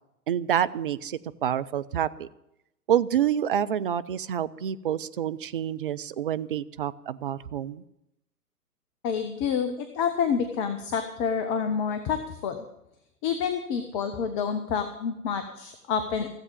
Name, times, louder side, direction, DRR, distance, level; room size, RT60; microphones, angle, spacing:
voice 1, 0.3-2.3 2.9-7.8, right 10 dB, 35° right, 14 dB, 0.5 m, -28 dB
voice 2, 9.0-12.6 13.2-16.3, left 6 dB, 20° left, 8 dB, 0.7 m, -28 dB
15.5 x 8.0 x 8.9 m, 0.86 s
figure-of-eight pair, 115°, 46 cm